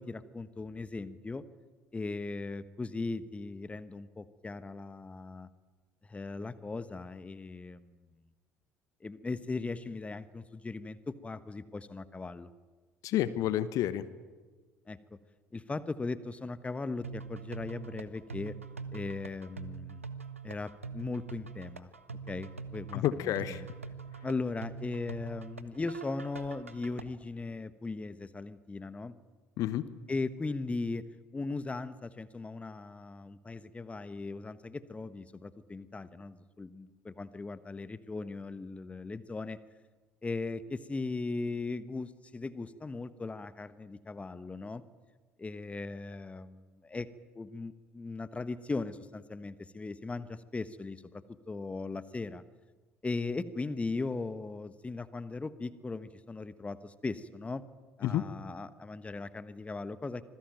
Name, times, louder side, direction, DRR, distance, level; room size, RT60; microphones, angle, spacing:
voice 1, 0.0-1.4 1.9-5.5 6.1-8.1 9.0-12.5 14.9-15.0 15.5-18.6 18.9-20.0 20.4-21.9 22.3-23.6 24.2-29.2 30.1-31.0 31.3-39.6 40.2-44.8 45.4-47.1 47.3-52.4 53.0-57.6 58.0-60.2, left 3 dB, 20° left, 15 dB, 1.2 m, -38 dB
voice 2, 13.0-14.0 22.9-23.6 29.6-29.9 58.0-58.2, left 12 dB, 55° left, 15 dB, 1.2 m, -30 dB
sound 1, 17.0-27.0, right 5 dB, 85° right, 1.0 m, -44 dB
25.5 x 20.5 x 9.1 m, 1.3 s
figure-of-eight pair, 60°, 7 cm